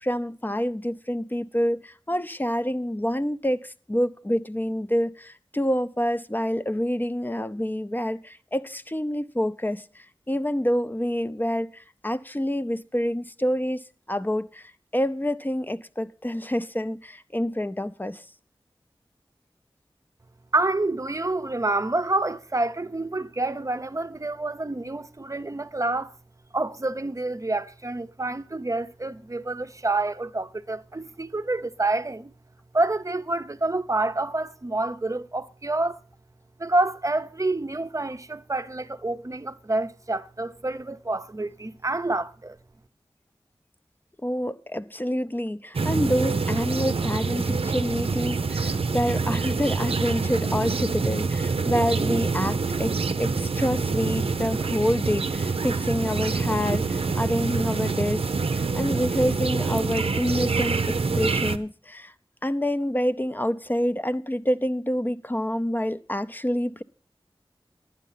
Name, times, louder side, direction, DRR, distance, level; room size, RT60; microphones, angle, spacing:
voice 1, 0.0-13.8 14.1-18.2 44.2-62.1 62.4-66.8, equal, 20° left, 0.6 m, -27 dB
voice 2, 20.5-26.2 26.5-32.3 32.7-36.0 36.6-42.6, right 2 dB, 35° right, 0.6 m, -28 dB
sound 1, 45.7-61.6, right 4 dB, 90° right, 0.6 m, -26 dB
11.0 x 9.3 x 5.6 m
wide cardioid pair, 55°, 10 cm